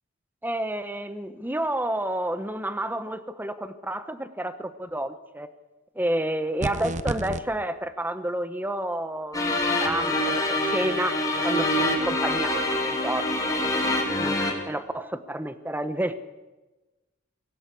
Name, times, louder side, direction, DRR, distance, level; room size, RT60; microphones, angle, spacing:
voice 1, 0.4-5.5 6.0-9.4 9.8-13.3 14.2-16.1, right 1 dB, 10° right, 11 dB, 1.1 m, -30 dB
sound 1, 6.6-7.4, right 2 dB, 35° right, 1.0 m, -29 dB
sound 2, 9.3-14.5, left 1 dB, 15° left, 3.5 m, -25 dB
23.5 x 16.5 x 8.4 m, 1.1 s
head